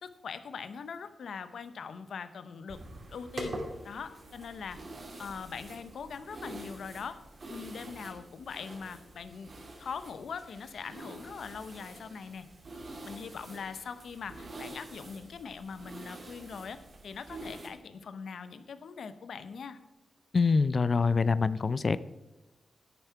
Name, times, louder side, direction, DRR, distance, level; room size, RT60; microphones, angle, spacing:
voice 1, 0.0-2.8 3.1-3.6 3.8-4.8 5.2-7.2 7.5-9.5 9.8-12.5 13.0-19.8, left 6 dB, 80° left, 12 dB, 0.7 m, -42 dB
sound 1, 2.7-17.7, right 1 dB, 50° right, 2.5 m, -46 dB
voice 2, 20.3-22.0, left 4 dB, 50° left, 16 dB, 0.4 m, -25 dB
10.5 x 9.2 x 4.6 m, 1.0 s
cardioid pair, 70°, 0 cm